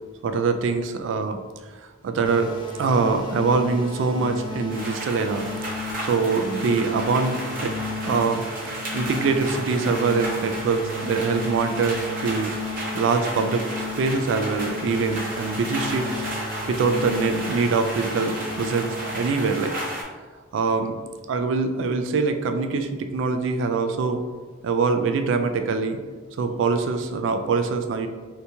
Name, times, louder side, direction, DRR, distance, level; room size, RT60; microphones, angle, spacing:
voice 1, 0.2-1.4 1.8-2.5 2.8-5.5 6.0-7.8 8.0-12.6 12.9-16.3 16.7-19.7 20.5-21.0 21.3-24.2 24.6-26.0 26.4-28.1, right 4 dB, 65° right, 7 dB, 0.3 m, -24 dB
sound 1, 2.2-19.3, left 3 dB, 25° left, 0.4 m, -34 dB
sound 2, 4.7-20.0, right 1 dB, 45° right, 0.7 m, -33 dB
3.4 x 2.8 x 2.7 m, 1.4 s
head